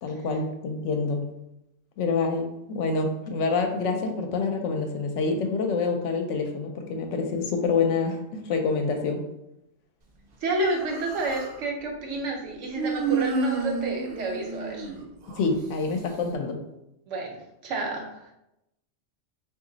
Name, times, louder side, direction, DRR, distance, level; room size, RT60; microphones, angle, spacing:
voice 1, 0.0-1.3 2.0-9.3 15.3-16.6, left 4 dB, 75° left, 4 dB, 0.9 m, -27 dB
voice 2, 10.4-14.9 17.1-17.4 17.6-18.3, right 2 dB, 75° right, 1 dB, 1.1 m, -30 dB
Human voice, 10.6-11.6 12.8-15.5, right 4 dB, 60° right, 0.7 m, -30 dB
3.0 x 2.5 x 3.8 m, 0.85 s
omnidirectional pair, 1.3 m